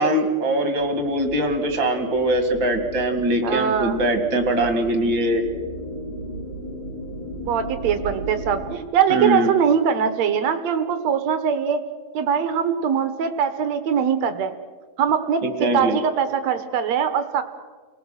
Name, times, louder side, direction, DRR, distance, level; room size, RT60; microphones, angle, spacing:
voice 1, 0.0-5.4 9.1-9.5 15.4-16.0, right 1 dB, 40° right, 6 dB, 1.9 m, -22 dB
sound 1, 0.8-8.8, right 1 dB, 35° left, 3.2 m, -35 dB
voice 2, 3.4-4.0 7.4-11.8 12.1-14.5 15.0-17.4, right 7 dB, 70° right, 9 dB, 1.7 m, -22 dB
30.0 x 19.5 x 6.5 m, 1.5 s
omnidirectional pair, 4.5 m